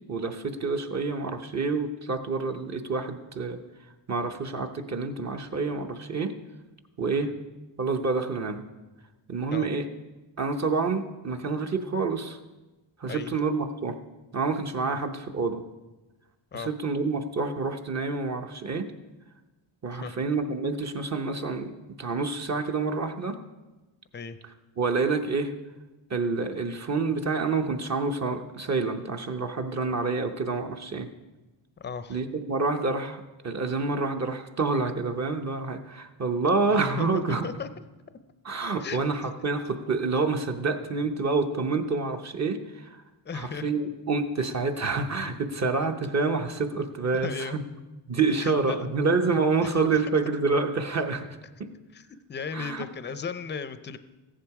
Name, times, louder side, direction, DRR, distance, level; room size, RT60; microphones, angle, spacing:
voice 1, 0.1-3.6 4.1-6.3 7.0-7.3 7.8-8.6 9.3-9.9 10.4-12.4 13.0-13.9 14.3-15.6 16.5-18.9 19.8-21.7 22.0-23.4 24.8-25.5 26.1-31.1 32.1-37.4 38.4-42.9 43.3-47.6 48.1-51.3 51.6-51.7 52.5-52.8, right 4 dB, 35° right, 5 dB, 0.9 m, -28 dB
voice 2, 13.1-13.4 14.9-15.0 16.5-16.7 19.9-20.1 24.1-24.4 31.8-32.2 37.0-37.8 38.8-39.0 43.3-43.7 47.1-47.6 48.4-48.9 49.6-49.8 51.9-54.0, left 5 dB, 25° left, 12 dB, 0.5 m, -36 dB
14.5 x 10.5 x 4.8 m, 1.1 s
wide cardioid pair, 140°, 45 cm